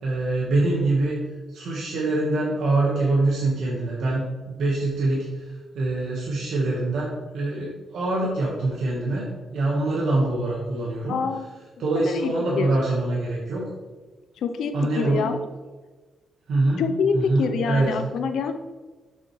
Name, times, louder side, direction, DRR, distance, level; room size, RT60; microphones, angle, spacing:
voice 1, 0.0-1.2 1.5-11.2 11.8-13.7 14.7-15.3 16.5-16.9 17.1-17.9, right 2 dB, 75° right, -5 dB, 1.3 m, -24 dB
voice 2, 11.1-11.5 12.0-12.7 14.4-15.4 16.8-18.5, left 5 dB, 75° left, 7 dB, 0.6 m, -26 dB
7.2 x 5.5 x 3.1 m, 1.3 s
wide cardioid pair, 160°, 0 cm